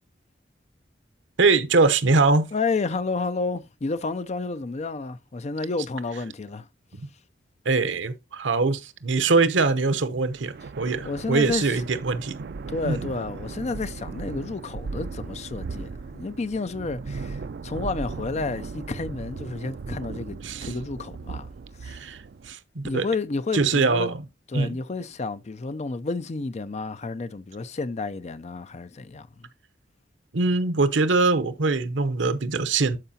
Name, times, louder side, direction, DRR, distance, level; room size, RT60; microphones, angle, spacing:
voice 1, 1.4-2.5 7.0-7.1 7.6-12.4 12.8-13.0 20.4-20.7 21.9-22.2 22.5-23.0 23.5-24.2 24.5-24.8 30.3-33.0, right 3 dB, 80° right, 0.9 m, -22 dB
voice 2, 2.5-6.7 11.0-11.8 12.7-21.5 21.8-22.0 22.8-24.1 24.5-29.5, left 3 dB, 35° left, 0.5 m, -31 dB
sound 1, 10.3-22.5, right 4 dB, 60° right, 0.4 m, -37 dB
12.5 x 4.8 x 2.8 m
head